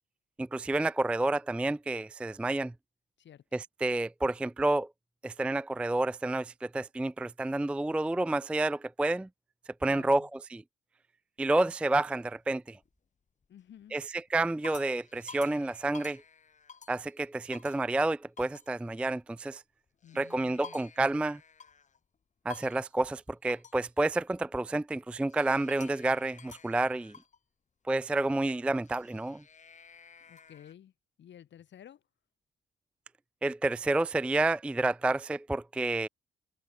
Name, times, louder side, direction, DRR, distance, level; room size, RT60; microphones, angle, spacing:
voice 1, 0.4-2.7 3.5-4.9 5.2-9.3 9.8-10.6 11.4-12.8 13.9-16.2 16.9-19.6 20.1-21.4 22.5-27.1 27.9-29.4 33.4-36.1, right 2 dB, 5° right, 0.3 m, -29 dB
voice 2, 9.8-10.3 13.5-14.0 20.0-20.8 30.3-30.9 31.2-32.0, left 10 dB, 65° left, 7.2 m, -52 dB
sound 1, 12.8-12.9 13.4-13.8 14.3-17.1 17.5-17.9 18.4-18.7 19.9-22.0 22.5-22.9 23.5-23.8 25.3-27.4 28.7-30.7, left 6 dB, 35° left, 1.8 m, -51 dB
cardioid pair, 90°, 20 cm